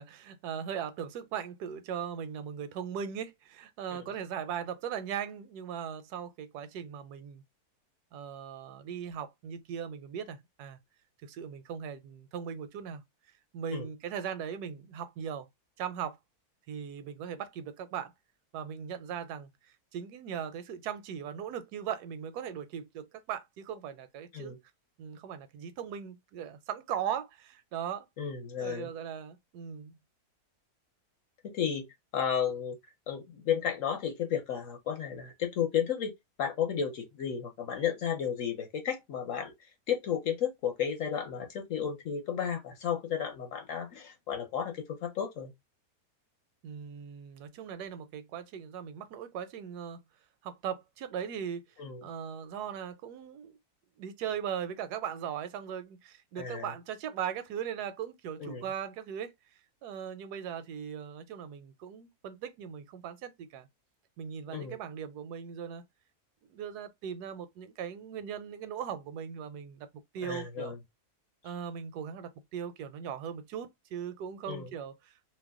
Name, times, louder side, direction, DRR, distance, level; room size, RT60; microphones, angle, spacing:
voice 1, 0.0-7.4 8.1-10.8 11.2-13.0 13.5-15.5 15.8-16.2 16.7-18.1 18.5-24.6 25.0-28.1 28.6-30.0 46.6-50.0 50.4-51.6 52.0-53.6 54.0-59.3 59.8-63.7 64.2-65.8 66.5-69.9 70.1-70.8 71.4-75.3, right 8 dB, 85° right, 1.1 m, -39 dB
voice 2, 28.2-28.9 31.4-31.9 32.1-32.8 33.1-36.1 36.4-39.5 39.9-45.5 51.8-52.0 56.4-56.7 58.4-58.7 64.5-64.7 70.2-70.8 74.5-74.7, left 8 dB, 60° left, 1.1 m, -33 dB
2.8 x 2.1 x 3.5 m
omnidirectional pair, 1.6 m